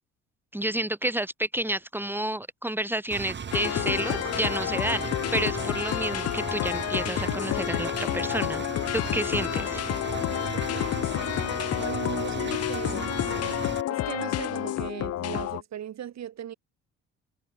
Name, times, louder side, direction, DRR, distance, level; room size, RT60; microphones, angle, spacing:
voice 1, 0.5-8.6 8.9-9.8, right 1 dB, 5° right, 2.4 m, -30 dB
Engine, 3.1-13.8, right 7 dB, 35° right, 1.4 m, -36 dB
sound 1, 3.5-15.6, left 14 dB, 50° left, 0.7 m, -29 dB
voice 2, 11.7-13.2 13.9-16.5, right 10 dB, 60° right, 4.8 m, -37 dB
hypercardioid pair, 55°, 31 cm